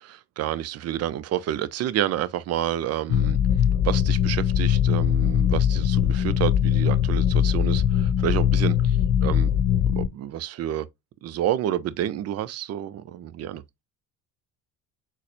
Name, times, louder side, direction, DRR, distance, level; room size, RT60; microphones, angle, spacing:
voice 1, 0.0-3.4 3.8-9.5 10.0-10.9 11.2-13.6, right 11 dB, 40° right, 0.4 m, -29 dB
sound 1, 3.1-10.1, left 9 dB, 55° left, 0.6 m, -21 dB
3.9 x 2.1 x 2.7 m
supercardioid pair, 75°, 44 cm